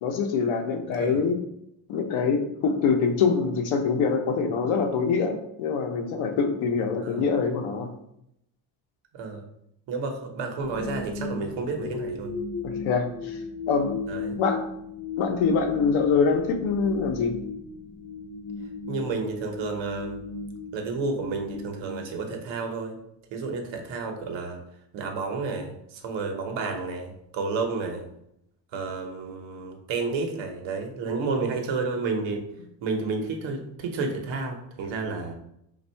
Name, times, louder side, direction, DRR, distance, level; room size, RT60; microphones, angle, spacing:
voice 1, 0.0-1.4 1.9-7.9 12.6-13.4 13.7-13.9 14.4-14.6 15.2-17.3, left 5 dB, 85° left, 5 dB, 0.7 m, -24 dB
voice 2, 9.1-9.4 9.9-12.3 14.1-14.4 18.9-20.2 20.7-23.0 23.3-24.6 24.9-28.1 28.7-32.4 32.8-35.3, right 4 dB, 70° right, 3 dB, 0.9 m, -31 dB
sound 1, 10.6-22.8, left 4 dB, 40° left, 0.7 m, -36 dB
3.5 x 2.4 x 4.3 m, 0.77 s
cardioid pair, 170°, 46 cm